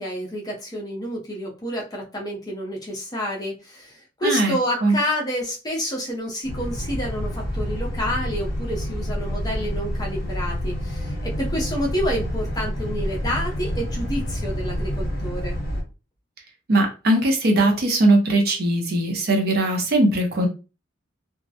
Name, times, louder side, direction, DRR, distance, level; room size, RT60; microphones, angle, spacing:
voice 1, 0.0-15.6, equal, 20° left, -2 dB, 0.5 m, -29 dB
voice 2, 4.2-4.6 4.8-5.0 16.7-20.5, right 1 dB, 55° right, 3 dB, 0.6 m, -20 dB
Boat Water vehicle, 6.4-15.8, equal, 50° left, 0.8 m, -28 dB
2.2 x 2.0 x 2.7 m, 0.31 s
head